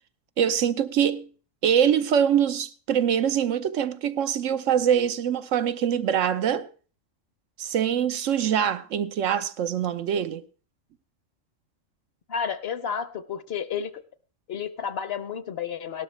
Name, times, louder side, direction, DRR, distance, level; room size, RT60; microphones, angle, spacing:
voice 1, 0.4-1.3 1.6-6.7 7.6-10.4, right 9 dB, 80° right, 1.1 m, -24 dB
voice 2, 12.3-13.9 14.5-16.0, left 7 dB, 55° left, 0.9 m, -31 dB
17.5 x 12.0 x 3.2 m
omnidirectional pair, 1.3 m